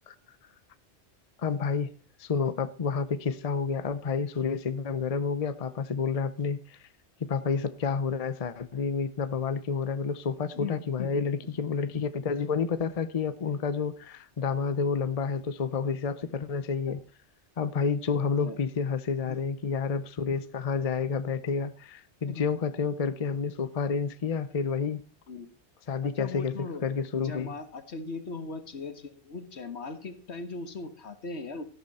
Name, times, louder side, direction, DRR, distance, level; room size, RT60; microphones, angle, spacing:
voice 1, 1.4-1.9 2.2-6.8 7.3-17.0 17.6-25.0 25.9-27.5, left 5 dB, 40° left, 0.7 m, -29 dB
voice 2, 10.5-11.3 18.4-18.6 19.3-19.5 22.3-22.5 25.3-25.5 26.0-26.8 27.2-31.6, left 4 dB, 75° left, 1.8 m, -39 dB
13.5 x 12.0 x 4.2 m
omnidirectional pair, 1.1 m